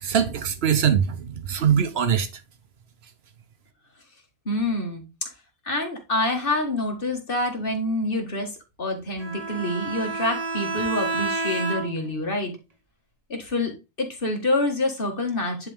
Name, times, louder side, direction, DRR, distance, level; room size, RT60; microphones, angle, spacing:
voice 1, 0.0-2.3, right 8 dB, 70° right, 1.1 m, -22 dB
voice 2, 4.5-5.3 5.6-8.5 8.8-12.6 13.3-15.7, left 2 dB, 55° left, 2.0 m, -27 dB
Bowed string instrument, 9.2-12.2, right 3 dB, 35° right, 1.0 m, -29 dB
10.5 x 3.7 x 3.5 m
omnidirectional pair, 1.1 m